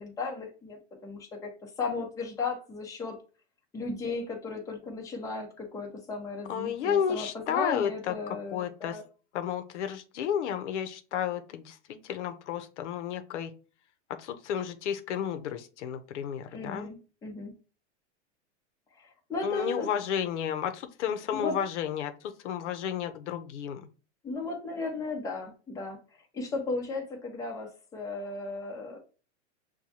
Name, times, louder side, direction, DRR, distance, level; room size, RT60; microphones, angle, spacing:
voice 1, 0.0-3.2 3.7-9.0 16.5-17.5 19.0-19.9 21.3-21.6 24.2-26.0 26.3-29.0, left 3 dB, 10° left, 0 dB, 0.7 m, -36 dB
voice 2, 6.5-9.0 9.3-13.5 14.2-16.9 19.4-23.9, left 9 dB, 80° left, 8 dB, 0.7 m, -32 dB
6.0 x 2.2 x 2.8 m, 0.35 s
supercardioid pair, 150°, 35 cm